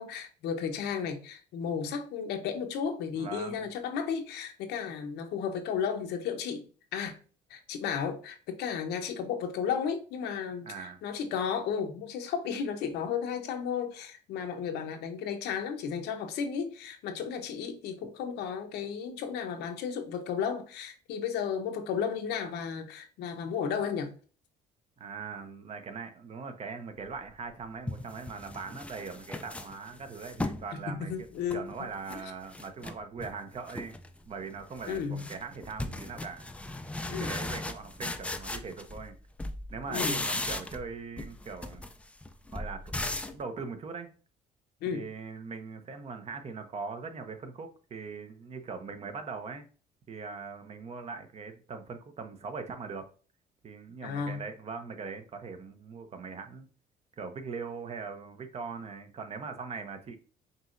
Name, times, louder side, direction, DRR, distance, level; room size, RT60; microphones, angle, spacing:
voice 1, 0.0-6.6 6.9-7.2 7.5-24.1 30.7-31.7 32.1-32.2 34.9-35.2 37.1-37.3 39.9-40.2 44.8-45.1 54.0-54.4, left 7 dB, 80° left, 0.8 m, -34 dB
voice 2, 3.1-3.7 10.6-11.0 25.0-34.0 34.3-36.5 37.1-39.1 39.7-41.8 42.5-44.1 44.9-49.7 50.1-53.1 53.6-56.7 57.2-60.2, right 5 dB, 40° right, 0.8 m, -41 dB
sound 1, 27.2-27.3 27.9-30.7 31.1-32.2 32.5-33.3 33.7-34.1 34.4-39.1 39.4-40.9 41.2-43.4, left 2 dB, 5° left, 0.4 m, -37 dB
5.4 x 2.9 x 2.6 m
cardioid pair, 110°, 17 cm